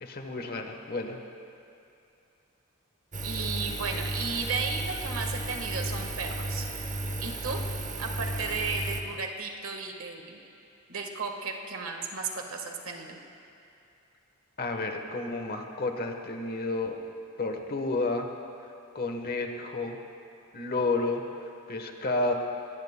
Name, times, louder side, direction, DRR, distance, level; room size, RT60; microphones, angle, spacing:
voice 1, 0.0-1.2 14.6-17.0 17.4-18.3 18.9-20.0 20.5-21.2 21.7-22.3, left 2 dB, 45° left, 4 dB, 1.1 m, -31 dB
Engine, 3.1-9.0, right 1 dB, 40° right, 0.8 m, -34 dB
voice 2, 3.2-6.7 7.2-7.6 8.0-10.4 10.9-13.2, right 4 dB, 85° right, 3 dB, 1.4 m, -34 dB
22.0 x 18.0 x 2.2 m, 2.6 s
head